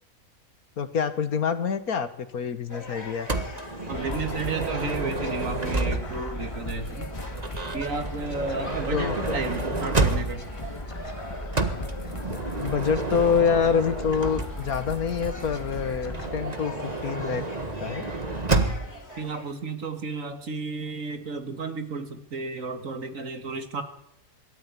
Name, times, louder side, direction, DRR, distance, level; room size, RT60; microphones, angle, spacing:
voice 1, 0.8-3.3 8.9-9.4 12.6-16.7 17.0-17.4 17.8-18.1, left 6 dB, 80° left, 11 dB, 1.9 m, -26 dB
sound 1, 2.7-19.5, left 1 dB, 45° left, 4.6 m, -43 dB
Motor vehicle (road) / Sliding door, 3.3-6.4 7.3-10.6 11.5-14.8 16.1-19.0, right 2 dB, 30° right, 1.7 m, -30 dB
sound 2, 3.9-16.3, left 1 dB, 20° left, 1.6 m, -36 dB
voice 2, 3.9-7.1 7.7-10.5 19.2-23.8, right 4 dB, 60° right, 8 dB, 2.3 m, -33 dB
22.0 x 13.5 x 9.6 m, 0.77 s
omnidirectional pair, 1.5 m